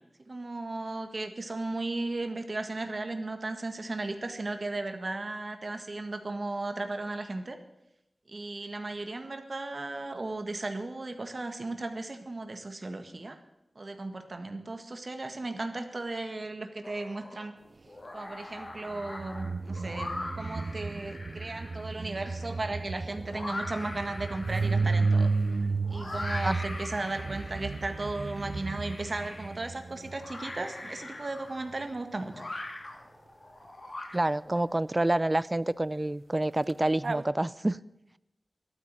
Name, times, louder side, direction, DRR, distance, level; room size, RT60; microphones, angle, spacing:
voice 1, 0.3-7.6 8.3-13.4 13.7-17.5 18.1-25.3 25.9-32.4, right 2 dB, 55° right, 7 dB, 1.7 m, -36 dB
sound 1, 16.8-17.5 17.9-34.6, left 2 dB, 55° left, 2.7 m, -42 dB
sound 2, 18.9-30.5 36.7-36.8 37.0-37.2, right 4 dB, 70° right, 0.6 m, -32 dB
voice 2, 34.1-37.8, right 1 dB, 30° right, 18 dB, 0.5 m, -28 dB
12.5 x 9.2 x 8.9 m, 0.89 s
wide cardioid pair, 50°, 0 cm